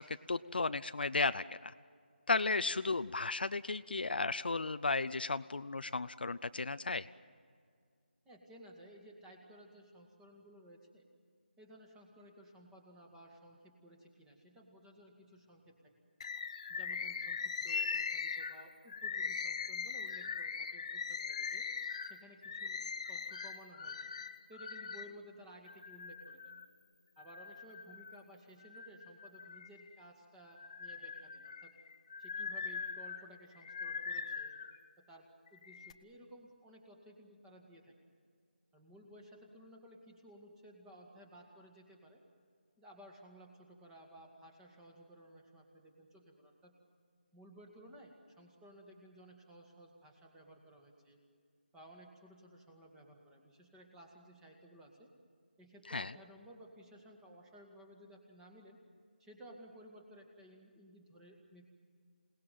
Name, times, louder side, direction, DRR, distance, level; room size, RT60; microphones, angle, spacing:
voice 1, 0.0-1.7 2.3-7.1 55.9-56.1, left 3 dB, 60° left, 13 dB, 0.6 m, -34 dB
voice 2, 8.3-11.1 11.6-16.0 16.7-21.7 22.0-24.1 24.5-26.5 27.2-31.8 32.2-34.5 35.0-37.9 38.7-42.2 42.8-46.8 47.3-51.2 51.7-55.1 55.6-58.8 59.2-61.7, right 1 dB, 5° right, 1 dB, 2.0 m, -57 dB
Bird, 16.2-25.1 25.7-26.6 27.2-28.2 28.6-30.0 30.5-34.8 35.5-35.9, left 6 dB, 35° left, 1.0 m, -41 dB
27.5 x 19.0 x 7.6 m, 2.1 s
figure-of-eight pair, 160°, 6 cm